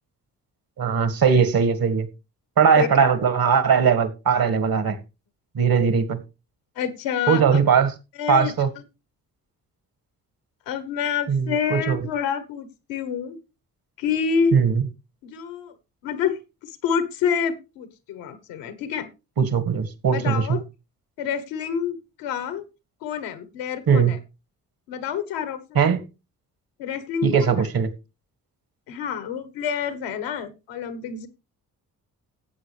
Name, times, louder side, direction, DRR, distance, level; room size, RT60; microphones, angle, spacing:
voice 1, 0.8-2.1 2.6-5.0 5.6-6.2 7.3-7.9 8.3-8.7 11.3-12.0 14.5-14.8 19.4-20.6 23.9-24.1 25.8-26.0 27.2-27.9, right 6 dB, 55° right, 1.9 m, -19 dB
voice 2, 2.8-3.1 6.8-7.7 8.2-8.5 10.7-13.4 14.0-14.6 15.2-15.7 16.0-16.4 16.8-19.1 20.1-20.6 21.2-22.7 23.0-24.2 24.9-25.9 26.8-27.7 28.9-31.3, left 7 dB, 75° left, 1.5 m, -27 dB
15.0 x 8.3 x 3.4 m
hypercardioid pair, 40°, 43 cm